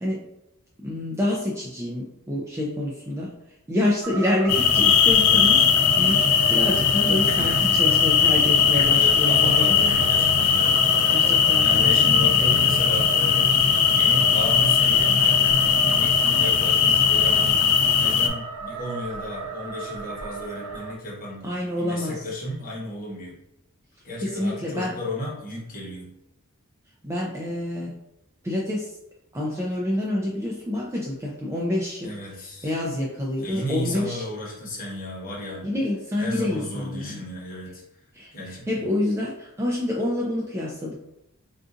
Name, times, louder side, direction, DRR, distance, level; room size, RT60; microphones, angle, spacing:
voice 1, 0.8-3.3 3.7-6.2 6.5-9.8 11.1-12.3 21.4-22.1 24.2-24.9 27.0-28.0 28.4-28.9 29.3-32.1 32.6-34.2 35.6-37.2 38.2-38.3 38.7-40.9, left 1 dB, 15° right, -4 dB, 0.4 m, -27 dB
sound 1, 4.0-20.9, right 4 dB, 80° right, 0.5 m, -34 dB
sound 2, 4.5-18.3, left 7 dB, 90° left, 0.4 m, -19 dB
voice 2, 7.3-7.7 8.9-11.2 11.6-21.5 21.8-23.4 24.0-26.1 32.0-32.7 33.4-35.6 36.2-37.8 38.3-38.9, left 1 dB, 40° left, -4 dB, 1.0 m, -34 dB
3.8 x 2.5 x 2.5 m, 0.85 s
head